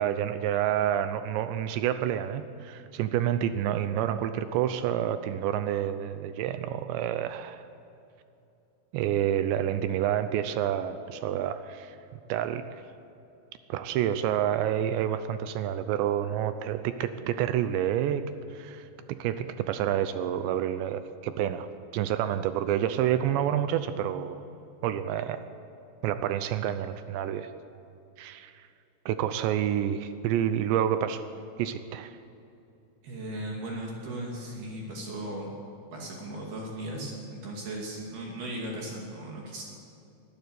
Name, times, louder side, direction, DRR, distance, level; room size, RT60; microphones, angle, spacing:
voice 1, 0.0-7.7 8.9-12.0 12.3-12.8 13.7-18.2 18.5-18.9 19.2-21.7 21.9-24.4 24.8-25.4 26.0-27.5 28.2-28.7 29.1-31.2 31.6-32.1, right 10 dB, 80° right, 10 dB, 2.6 m, -28 dB
voice 2, 33.0-35.5 35.9-39.7, right 1 dB, 55° right, -1 dB, 4.1 m, -37 dB
23.0 x 14.0 x 8.2 m, 2.7 s
omnidirectional pair, 5.7 m